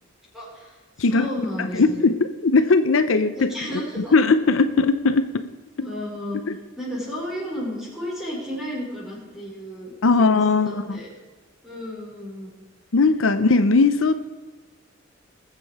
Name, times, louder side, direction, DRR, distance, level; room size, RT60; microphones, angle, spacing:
voice 1, 0.3-2.0 3.3-4.1 5.8-6.4 6.8-10.4 10.6-11.1 11.6-12.5, equal, ahead, -5 dB, 4.9 m, -33 dB
voice 2, 1.0-1.3 1.6-3.5 4.0-5.4 6.5-6.6 10.0-11.0 12.9-14.2, left 3 dB, 75° left, 10 dB, 0.7 m, -19 dB
20.5 x 7.5 x 4.8 m, 1.3 s
head